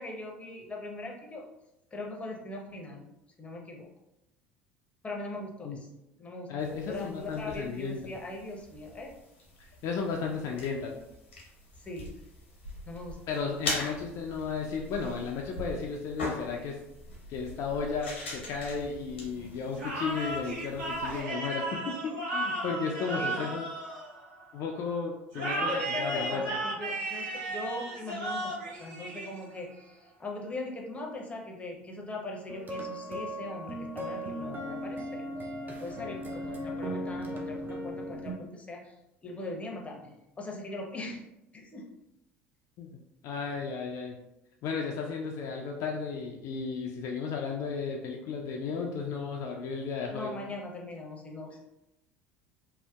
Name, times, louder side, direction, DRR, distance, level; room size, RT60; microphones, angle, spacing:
voice 1, 0.0-1.5 1.9-3.1 3.4-3.9 5.0-5.9 6.2-6.5 6.9-9.1 11.8-12.1 12.9-13.4 23.2-23.5 25.6-38.9 39.2-41.2 41.5-41.9 50.1-51.6, left 2 dB, 20° left, 0 dB, 0.6 m, -40 dB
voice 2, 6.5-8.1 9.6-10.9 13.3-16.8 17.3-23.7 24.5-26.4 42.8-44.2 44.6-50.3, left 5 dB, 55° left, 0 dB, 0.3 m, -34 dB
sound 1, 6.6-21.2, left 1 dB, 90° left, 0.7 m, -42 dB
sound 2, 19.7-24.6 25.3-29.7, right 2 dB, 70° right, 1.2 m, -35 dB
sound 3, 32.5-38.3, equal, 30° right, 0.5 m, -37 dB
2.7 x 2.1 x 2.3 m, 0.87 s
hypercardioid pair, 70°, 6 cm